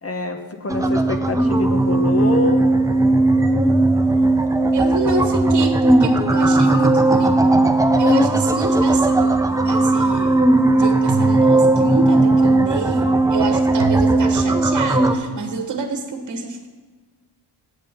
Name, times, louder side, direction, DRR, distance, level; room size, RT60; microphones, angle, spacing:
voice 1, 0.0-2.6, left 3 dB, 30° left, 5 dB, 1.2 m, -25 dB
sound 1, 0.7-15.2, right 2 dB, 5° right, 0.7 m, -17 dB
voice 2, 4.7-7.6 8.0-10.4 10.7-16.7, right 3 dB, 40° right, 5 dB, 1.5 m, -28 dB
sound 2, 9.2-9.6 11.1-12.3 13.8-15.0, right 4 dB, 85° right, 0.9 m, -29 dB
8.4 x 7.7 x 5.3 m, 1.4 s
cardioid pair, 75°, 45 cm